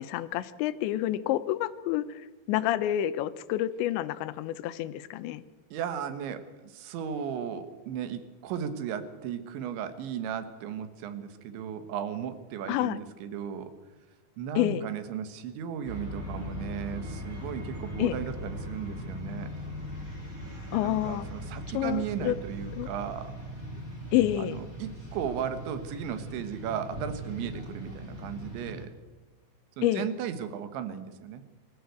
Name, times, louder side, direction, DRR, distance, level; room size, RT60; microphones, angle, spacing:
voice 1, 0.0-2.2 2.5-5.4 12.7-13.0 14.6-14.9 18.0-18.2 20.7-21.3 21.7-22.3 22.8-22.9 24.1-24.6 29.8-30.1, left 13 dB, 80° left, 13 dB, 3.1 m, -28 dB
voice 2, 5.7-13.7 14.4-19.6 20.7-23.4 24.4-29.0 29.8-31.4, right 8 dB, 80° right, 11 dB, 3.8 m, -36 dB
sound 1, 15.8-28.8, equal, 20° right, 4.0 m, -39 dB
24.0 x 14.0 x 8.0 m, 1.2 s
omnidirectional pair, 5.2 m